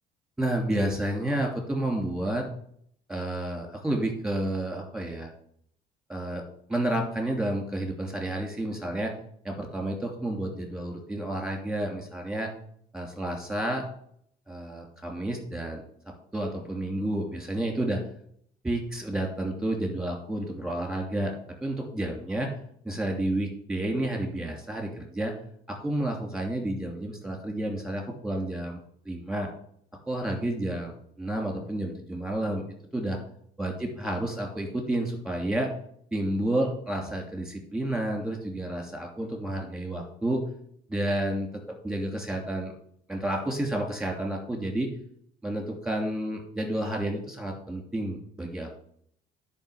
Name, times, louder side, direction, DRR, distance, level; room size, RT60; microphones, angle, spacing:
voice 1, 0.4-2.4 3.1-5.3 6.1-6.4 6.7-9.1 9.4-12.5 12.9-13.8 14.5-18.0 18.6-21.3 21.6-22.5 22.8-25.3 25.7-28.8 29.0-29.5 30.1-32.6 32.9-33.2 33.6-35.7 36.1-40.4 40.9-42.7 43.1-44.9 45.4-48.8, right 1 dB, 5° right, 2 dB, 2.8 m, -30 dB
10.5 x 5.3 x 7.1 m, 0.66 s
cardioid pair, 110°, 17 cm